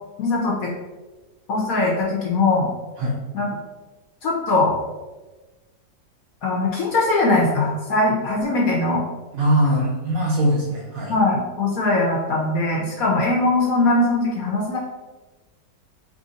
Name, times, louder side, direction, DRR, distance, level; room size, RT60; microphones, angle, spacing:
voice 1, 0.2-0.7 1.5-2.7 3.3-3.5 4.2-4.7 6.4-9.0 11.1-14.8, left 2 dB, 65° left, -3 dB, 0.9 m, -21 dB
voice 2, 9.3-11.2, right 1 dB, 65° right, -3 dB, 0.9 m, -21 dB
3.4 x 2.5 x 3.8 m, 1.2 s
omnidirectional pair, 2.0 m